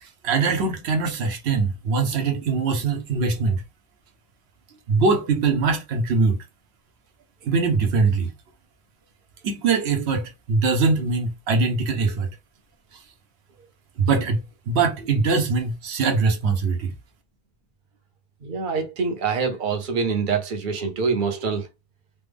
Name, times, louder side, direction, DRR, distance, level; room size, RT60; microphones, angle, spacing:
voice 1, 0.0-3.6 4.9-6.4 7.4-8.3 9.4-12.3 14.0-14.4 14.7-16.9, right 4 dB, 85° right, 1.0 m, -22 dB
voice 2, 18.4-21.7, right 5 dB, 55° right, 0.9 m, -25 dB
3.3 x 2.0 x 3.3 m
omnidirectional pair, 1.1 m